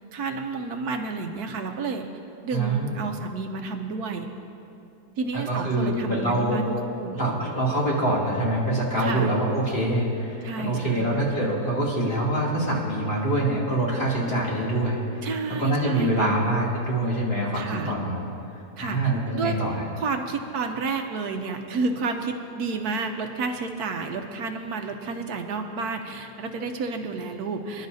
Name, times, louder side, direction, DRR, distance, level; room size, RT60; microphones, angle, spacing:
voice 1, 0.1-2.0 2.4-4.3 5.2-7.1 9.0-9.3 10.4-11.1 15.2-16.4 17.5-18.0 18.8-19.0 19.3-19.6 20.0-27.9, right 4 dB, 75° right, 5 dB, 1.3 m, -30 dB
voice 2, 2.5-3.0 5.3-6.6 7.1-15.0 15.6-18.3 18.8-19.8, right 1 dB, 35° left, -6 dB, 3.0 m, -25 dB
26.0 x 11.0 x 2.8 m, 2.7 s
omnidirectional pair, 1.7 m